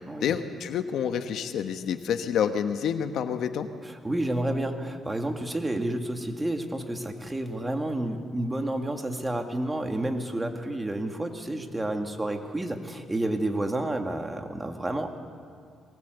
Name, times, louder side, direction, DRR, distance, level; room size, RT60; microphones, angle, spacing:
voice 1, 0.2-3.7, left 8 dB, 75° left, 8 dB, 1.2 m, -28 dB
voice 2, 3.8-15.2, right 1 dB, 15° right, 4 dB, 2.3 m, -30 dB
22.5 x 19.5 x 8.2 m, 2.2 s
cardioid pair, 90°, 0 cm